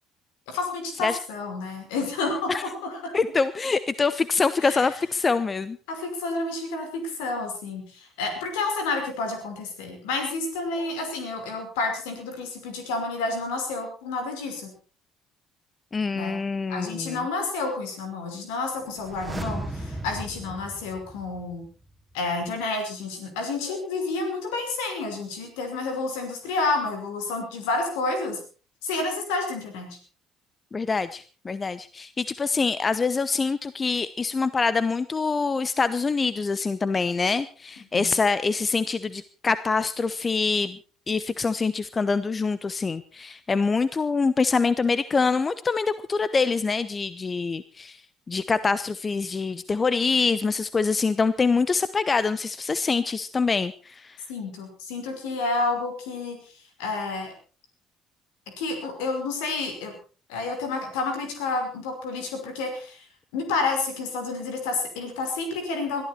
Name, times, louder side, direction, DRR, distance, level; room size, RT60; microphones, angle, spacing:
voice 1, 0.5-3.1 4.6-4.9 5.9-14.7 16.1-16.4 16.7-21.7 22.1-28.4 28.8-30.0 37.9-38.1 54.3-56.4 56.8-57.3 58.6-59.9 60.3-63.0 63.3-66.0, left 3 dB, 70° left, 5 dB, 5.5 m, -30 dB
voice 2, 3.1-5.8 15.9-17.3 30.7-40.8 41.1-48.0 48.3-54.2, left 4 dB, 30° left, 16 dB, 0.8 m, -25 dB
sound 1, 18.9-21.9 22.1-22.2, right 1 dB, 10° right, 2.8 m, -36 dB
21.5 x 13.5 x 4.4 m, 0.37 s
figure-of-eight pair, 55°, 0 cm